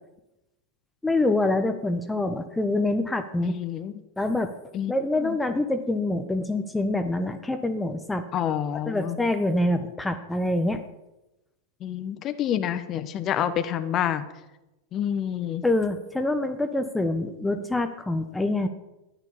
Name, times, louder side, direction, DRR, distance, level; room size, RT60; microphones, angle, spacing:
voice 1, 1.0-3.6 4.2-4.5 4.9-8.2 8.9-10.8 15.6-18.7, left 2 dB, 5° left, 8 dB, 1.1 m, -25 dB
voice 2, 3.4-3.9 4.7-4.9 5.2-5.4 8.3-9.2 11.8-14.3 14.9-15.6, left 10 dB, 30° left, 10 dB, 1.3 m, -28 dB
13.5 x 11.5 x 7.1 m, 0.97 s
figure-of-eight pair, 90°, 0 cm